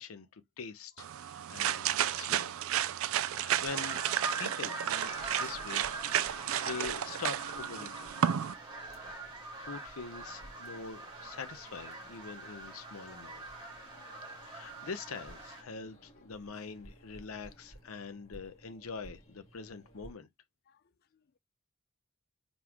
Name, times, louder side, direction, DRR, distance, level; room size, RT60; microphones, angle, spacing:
voice 1, 0.0-2.6 3.1-4.0 4.4-8.1 9.0-9.2 9.6-13.4 14.4-20.3, left 5 dB, 90° left, 0.7 m, -44 dB
sound 1, 1.0-8.5, right 10 dB, 75° right, 0.4 m, -32 dB
sound 2, 3.7-15.6, right 2 dB, 25° right, 1.8 m, -44 dB
sound 3, 5.1-20.1, right 1 dB, 30° left, 1.9 m, -57 dB
voice 2, 13.6-14.1 14.7-14.8 20.7-20.8 21.1-21.4, left 6 dB, 50° left, 0.4 m, -68 dB
4.1 x 3.6 x 3.0 m
head